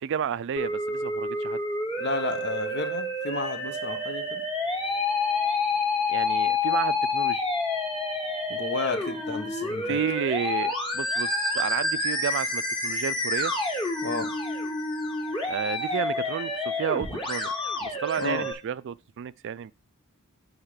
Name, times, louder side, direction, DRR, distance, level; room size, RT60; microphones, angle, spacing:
voice 1, 0.0-1.6 6.1-7.4 9.9-13.5 15.5-17.5 17.8-19.7, right 8 dB, 55° right, 0.4 m, -31 dB
Musical instrument, 0.6-18.5, left 2 dB, 25° left, 1.8 m, -28 dB
voice 2, 2.0-4.4 8.5-10.0 14.0-14.3 18.2-18.5, left 3 dB, 50° left, 1.1 m, -32 dB
8.0 x 3.6 x 6.3 m
head